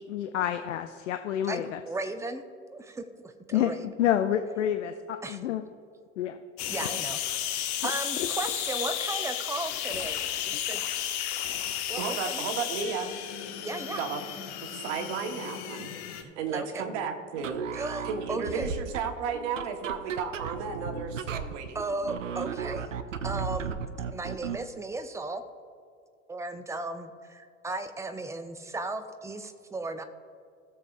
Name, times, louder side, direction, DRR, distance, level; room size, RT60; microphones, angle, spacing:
voice 1, 0.0-1.8 3.5-4.9 5.3-5.6 6.2-6.4 6.8-7.0, left 10 dB, 70° left, 8 dB, 0.6 m, -28 dB
voice 2, 1.5-2.5 2.7-3.9 5.2-5.5 6.7-7.2 7.5-10.8 11.9-12.5 13.6-14.0 16.1-17.0 17.7-18.7 21.7-22.9 23.2-23.8 24.1-25.4 26.3-30.0, right 2 dB, 10° right, 8 dB, 0.7 m, -36 dB
sound 1, 6.6-16.2, left 10 dB, 50° left, 1.0 m, -33 dB
voice 3, 12.0-13.1 13.9-14.2 14.6-17.7 18.0-21.8, right 6 dB, 60° right, 5 dB, 1.3 m, -34 dB
sound 2, 17.4-24.7, right 6 dB, 85° right, 0.6 m, -36 dB
18.0 x 6.9 x 2.5 m, 2.2 s
figure-of-eight pair, 75°, 38 cm